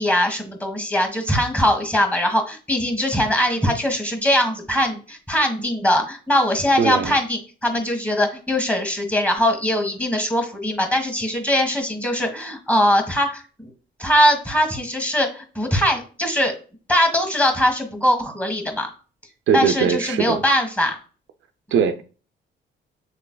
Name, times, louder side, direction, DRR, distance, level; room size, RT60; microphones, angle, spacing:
voice 1, 0.0-13.7 14.0-16.5 16.9-18.9 19.5-21.0, equal, 5° left, 4 dB, 1.5 m, -21 dB
voice 2, 6.8-7.1 19.5-20.4 21.7-22.0, right 7 dB, 65° right, 8 dB, 0.4 m, -20 dB
7.0 x 3.3 x 2.2 m, 0.38 s
cardioid pair, 90°, 20 cm